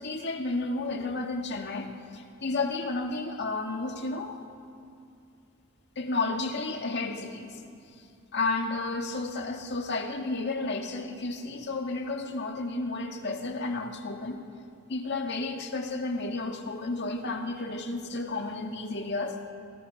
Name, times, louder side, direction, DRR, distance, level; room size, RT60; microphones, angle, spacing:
voice 1, 0.0-4.4 6.0-7.6 8.3-14.4 14.9-19.4, left 3 dB, 55° left, 4 dB, 1.9 m, -32 dB
28.5 x 23.5 x 5.7 m, 2.4 s
head